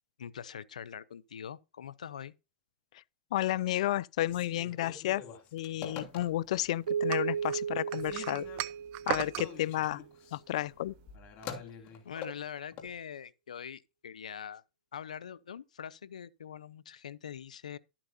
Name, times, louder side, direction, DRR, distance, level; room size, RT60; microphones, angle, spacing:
voice 1, 0.2-2.3 12.0-14.6 14.9-17.8, left 8 dB, 90° left, 0.8 m, -43 dB
voice 2, 3.3-5.2 5.5-8.5 9.1-10.0 10.3-10.9, left 14 dB, 65° left, 0.5 m, -32 dB
Telephone, 4.2-6.7 7.1-7.6 7.9-12.9, left 7 dB, 40° left, 2.9 m, -46 dB
Keyboard (musical), 6.9-9.8, right 7 dB, 90° right, 1.0 m, -35 dB
sound 1, 7.1-9.5, right 19 dB, 45° right, 0.7 m, -36 dB
12.5 x 8.8 x 2.8 m
hypercardioid pair, 125°, 4 cm